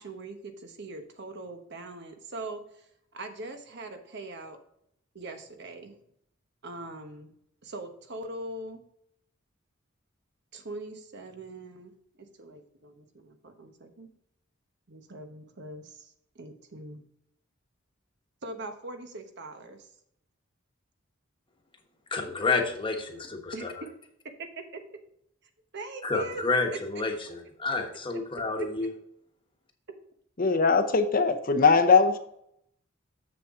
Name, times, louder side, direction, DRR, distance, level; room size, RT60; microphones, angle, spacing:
voice 1, 0.0-4.6 5.1-6.0 6.6-7.3 7.6-8.8 10.5-14.1 14.9-17.0 18.4-19.9 23.5-23.9 24.4-24.8 25.7-26.4 26.7-26.8 28.6-28.7, right 2 dB, 55° right, 6 dB, 1.1 m, -41 dB
voice 2, 22.1-23.7 26.0-28.9, left 3 dB, 25° left, 3 dB, 1.2 m, -29 dB
voice 3, 30.4-32.2, left 4 dB, 45° left, 8 dB, 0.7 m, -21 dB
7.2 x 6.9 x 3.7 m, 0.72 s
head